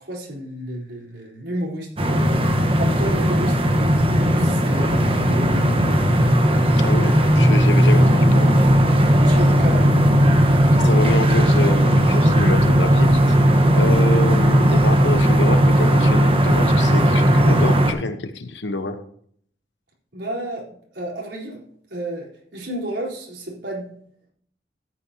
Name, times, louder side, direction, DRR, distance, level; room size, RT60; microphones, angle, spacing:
voice 1, 0.0-5.9 9.1-9.9 20.1-21.6 21.9-23.9, right 1 dB, 80° right, -3 dB, 4.2 m, -31 dB
sound 1, 2.0-17.9, equal, 30° right, 1.3 m, -16 dB
voice 2, 6.8-8.6 10.8-13.4 13.8-19.0, left 2 dB, 90° left, 9 dB, 1.2 m, -27 dB
13.5 x 10.0 x 2.9 m, 0.63 s
head